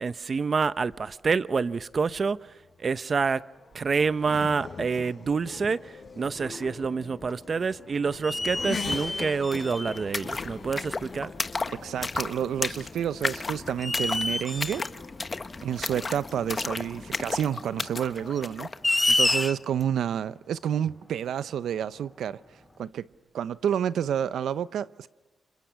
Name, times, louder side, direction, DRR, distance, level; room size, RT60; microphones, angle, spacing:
voice 1, 0.0-2.4 2.8-3.4 3.7-11.3, right 5 dB, 50° right, 0.8 m, -27 dB
Race car auto racing / Accelerating revving vroom, 2.3-18.5, left 5 dB, 60° left, 5.0 m, -43 dB
sound 1, 5.6-5.7 6.2-7.0 7.3-7.4 8.2-10.0 11.1-11.2 13.0-13.3 13.8-14.9 16.7-16.8 18.3-19.8, left 2 dB, 20° left, 0.7 m, -28 dB
sound 2, 8.9-9.0 9.2-19.4, left 3 dB, 35° left, 1.2 m, -34 dB
voice 2, 11.7-14.8 15.6-18.7 19.1-22.4 22.8-23.1 23.3-25.1, right 9 dB, 85° right, 0.7 m, -29 dB
29.5 x 26.5 x 5.9 m
cardioid pair, 70°, 0 cm